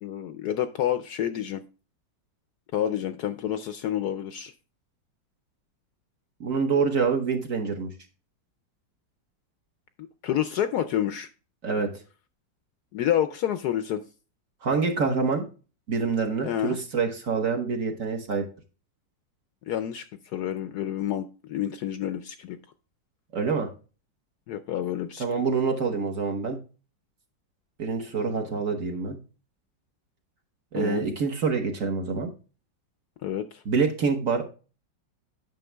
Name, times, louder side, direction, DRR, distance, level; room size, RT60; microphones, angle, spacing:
voice 1, 0.0-1.6 2.7-4.5 10.2-11.3 12.9-14.0 16.4-16.8 19.7-22.6 24.5-25.2 30.7-31.0 33.2-33.6, left 11 dB, 70° left, 10 dB, 1.0 m, -29 dB
voice 2, 6.4-7.9 11.6-11.9 14.6-15.4 15.9-18.4 23.3-23.7 25.2-26.6 27.8-29.2 30.7-32.3 33.6-34.5, right 5 dB, 50° right, 3 dB, 1.4 m, -26 dB
9.2 x 6.0 x 3.3 m, 0.34 s
omnidirectional pair, 2.0 m